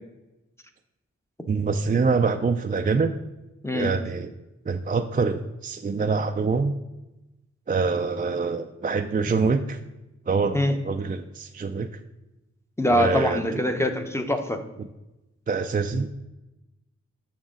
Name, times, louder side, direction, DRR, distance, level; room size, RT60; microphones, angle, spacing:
voice 1, 1.5-3.1 3.7-4.3 4.7-6.7 7.7-9.8 10.3-10.6 10.8-11.9 12.9-13.4 15.5-16.1, right 4 dB, 30° right, 7 dB, 0.3 m, -25 dB
voice 2, 12.8-14.6, left 1 dB, 10° left, 6 dB, 0.7 m, -23 dB
6.3 x 6.0 x 3.7 m, 0.98 s
wide cardioid pair, 55°, 29 cm